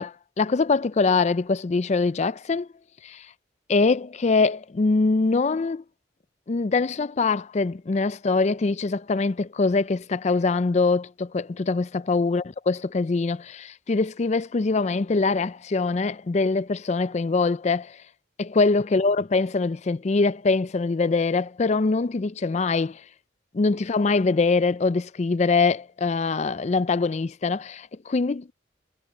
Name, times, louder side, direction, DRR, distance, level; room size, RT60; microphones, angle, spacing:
voice 1, 0.0-2.7 3.0-3.3 3.7-5.8 6.5-18.0 18.4-23.0 23.5-28.5, left 3 dB, 40° left, 0.4 m, -23 dB
head